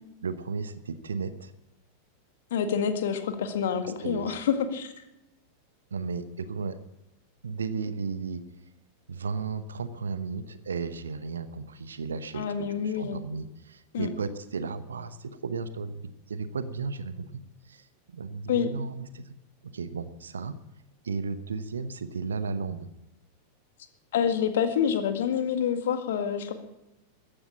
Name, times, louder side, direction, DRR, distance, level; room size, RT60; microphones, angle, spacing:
voice 1, 0.2-1.5 3.8-4.3 5.9-6.8 7.4-8.4 9.1-15.9 16.3-19.2 19.7-20.6 21.0-22.9, right 5 dB, 70° right, 13 dB, 0.9 m, -34 dB
voice 2, 2.5-4.9 12.3-13.2 13.9-14.1 18.5-18.7 24.1-26.6, left 8 dB, 60° left, 9 dB, 1.9 m, -27 dB
14.5 x 10.0 x 8.5 m, 0.94 s
figure-of-eight pair, 90°, 0 cm